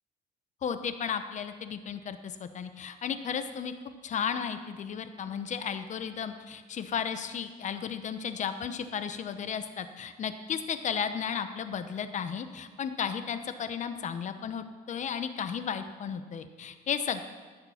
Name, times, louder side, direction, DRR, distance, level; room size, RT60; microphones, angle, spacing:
voice 1, 0.6-3.7 4.0-17.2, left 7 dB, 45° left, 10 dB, 0.9 m, -34 dB
15.0 x 6.7 x 5.8 m, 1.5 s
cardioid pair, 110°, 17 cm